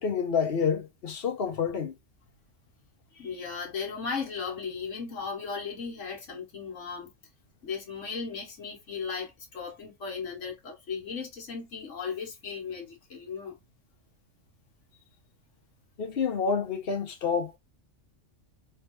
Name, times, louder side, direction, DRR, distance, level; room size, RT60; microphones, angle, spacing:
voice 1, 0.0-1.9 16.0-17.5, left 6 dB, 55° left, 1.0 m, -28 dB
voice 2, 3.1-7.1 7.6-13.6, left 5 dB, 70° left, 1.6 m, -36 dB
3.2 x 3.2 x 3.0 m
omnidirectional pair, 1.3 m